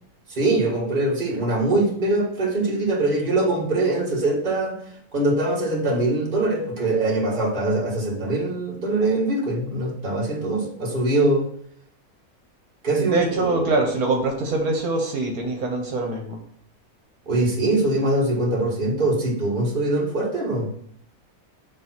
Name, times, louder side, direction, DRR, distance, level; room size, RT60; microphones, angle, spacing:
voice 1, 0.3-4.8 5.1-11.4 12.8-13.7 17.3-20.7, right 2 dB, 35° right, -2 dB, 1.7 m, -23 dB
voice 2, 13.0-16.4, right 2 dB, 75° right, 2 dB, 1.5 m, -23 dB
6.8 x 3.1 x 5.8 m, 0.67 s
omnidirectional pair, 1.6 m